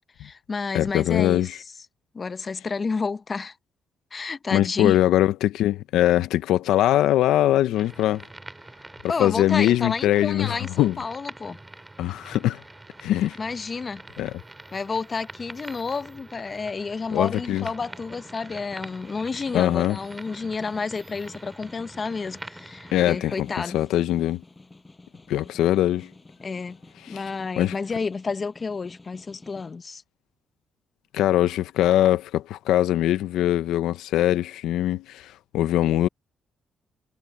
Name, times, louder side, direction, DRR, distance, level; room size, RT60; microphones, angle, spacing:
voice 1, 0.2-1.5 2.1-3.5 4.1-5.0 9.1-11.6 13.4-14.0 14.7-23.8 26.4-26.8 27.1-30.0, left 4 dB, 35° left, 0.7 m, -30 dB
voice 2, 0.7-1.6 4.5-8.2 9.2-11.0 12.0-12.6 13.0-13.4 14.2-14.3 17.1-17.6 19.5-20.0 22.9-23.5 23.7-24.4 25.3-26.1 27.1-27.2 27.6-27.7 31.1-36.1, left 13 dB, 85° left, 0.6 m, -22 dB
sound 1, 7.7-23.0, right 2 dB, 15° right, 2.1 m, -45 dB
sound 2, 13.9-24.8, right 5 dB, 40° right, 5.5 m, -58 dB
Snare drum, 17.0-29.7, left 2 dB, 20° left, 7.2 m, -49 dB
cardioid pair, 90°, 0 cm